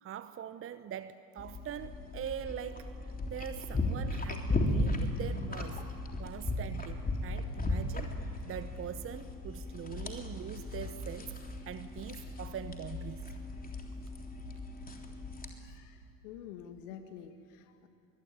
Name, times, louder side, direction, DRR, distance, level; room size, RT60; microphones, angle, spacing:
voice 1, 0.0-2.9 3.3-5.8 6.2-8.2 8.4-13.3, right 9 dB, 25° right, 13 dB, 0.9 m, -42 dB
sound 1, 1.4-15.5, left 2 dB, 15° left, 3.5 m, -36 dB
voice 2, 15.6-17.9, left 8 dB, 60° left, 8 dB, 1.8 m, -48 dB
24.0 x 21.0 x 9.6 m, 2.4 s
figure-of-eight pair, 70°, 49 cm